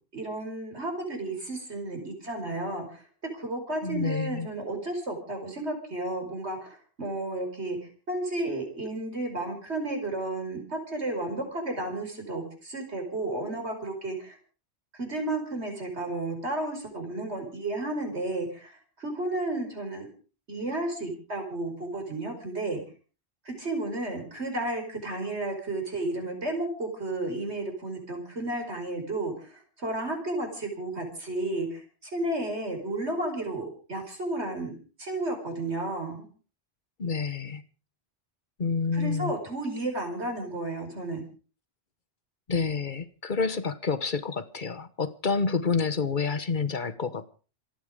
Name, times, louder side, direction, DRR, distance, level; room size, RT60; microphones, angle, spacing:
voice 1, 0.1-3.1 3.3-7.8 8.1-14.4 15.0-20.1 20.5-22.8 23.5-36.3 38.9-41.2, right 2 dB, 85° right, 4 dB, 5.2 m, -32 dB
voice 2, 3.8-4.5 37.0-37.6 38.6-39.3 42.5-47.4, left 5 dB, 50° left, 13 dB, 1.4 m, -28 dB
27.0 x 9.2 x 5.1 m, 0.38 s
omnidirectional pair, 1.1 m